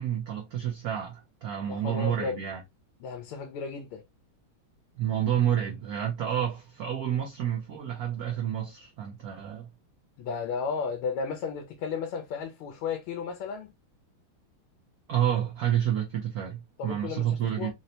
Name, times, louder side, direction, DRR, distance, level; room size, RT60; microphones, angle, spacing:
voice 1, 0.0-2.6 5.0-9.7 15.1-17.7, right 10 dB, 70° right, 0.8 m, -29 dB
voice 2, 1.7-2.4 3.0-4.0 10.2-13.7 16.8-17.7, left 5 dB, 80° left, 1.5 m, -34 dB
4.1 x 2.1 x 2.7 m
omnidirectional pair, 2.3 m